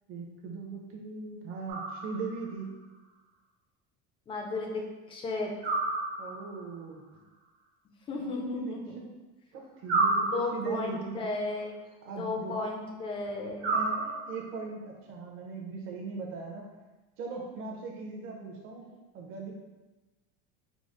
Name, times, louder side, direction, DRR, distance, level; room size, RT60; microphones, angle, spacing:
voice 1, 0.1-2.7 6.2-7.1 8.2-8.7 9.5-11.2 12.0-12.5 13.7-16.7 17.2-18.9 19.1-19.5, right 4 dB, 40° right, 0 dB, 0.8 m, -39 dB
sound 1, 1.7-2.5 5.6-6.6 9.9-10.9 13.6-14.6, right 3 dB, 85° right, 1.2 m, -30 dB
voice 2, 4.3-5.5 8.1-9.0 10.2-11.7 12.2-13.8, left 3 dB, 15° left, 1 dB, 0.3 m, -34 dB
4.9 x 2.0 x 3.7 m, 1.1 s
cardioid pair, 160°, 33 cm